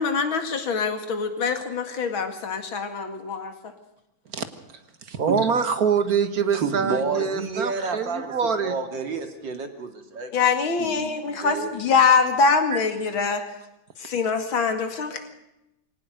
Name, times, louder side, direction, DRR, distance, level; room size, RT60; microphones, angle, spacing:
voice 1, 0.0-3.5 10.3-13.4 14.0-15.3, left 5 dB, 90° left, 7 dB, 2.9 m, -24 dB
voice 2, 5.1-9.1 12.7-12.8, right 6 dB, 50° right, 10 dB, 1.8 m, -25 dB
voice 3, 6.5-8.3 8.6-10.4 10.8-11.7, right 4 dB, 65° right, 6 dB, 2.9 m, -30 dB
23.5 x 18.5 x 6.6 m, 0.89 s
omnidirectional pair, 2.1 m